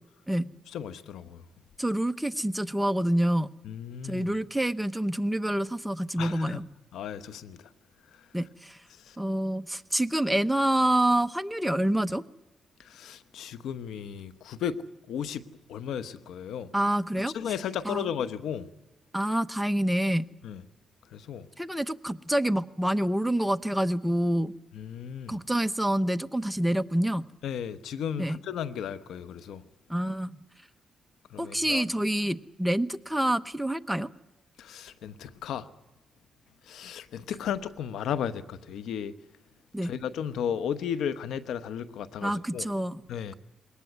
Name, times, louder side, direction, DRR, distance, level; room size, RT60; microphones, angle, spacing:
voice 1, 0.7-1.4 3.6-4.3 6.2-6.6 6.9-7.6 9.1-9.2 12.8-14.8 15.1-16.7 17.3-18.7 20.4-20.6 21.1-21.5 24.7-25.4 27.4-29.6 31.3-31.8 34.6-35.7 36.7-39.1 39.8-42.7 43.1-43.3, left 8 dB, 85° left, 1.0 m, -34 dB
voice 2, 1.8-3.5 4.0-6.7 8.3-8.8 9.2-12.2 16.7-17.4 17.8-18.1 19.1-20.3 21.6-24.5 25.3-27.3 28.2-28.4 29.9-30.3 31.4-34.1 39.7-39.9 42.2-43.0, right 1 dB, 5° right, 0.9 m, -27 dB
21.0 x 18.5 x 9.5 m
cardioid pair, 75°, 0 cm